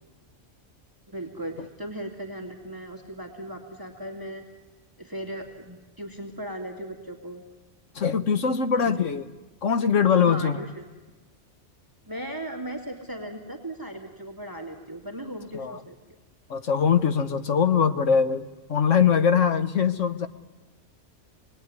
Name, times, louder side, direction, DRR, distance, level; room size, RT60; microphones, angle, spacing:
voice 1, 1.1-4.5 5.0-7.4 10.2-10.9 12.1-15.9, right 1 dB, 15° right, 2 dB, 2.3 m, -37 dB
voice 2, 7.9-9.3 9.6-10.6 15.5-15.8 16.5-18.4 18.7-20.3, left 7 dB, 80° left, 10 dB, 1.4 m, -22 dB
25.0 x 20.0 x 9.7 m, 1.2 s
omnidirectional pair, 1.3 m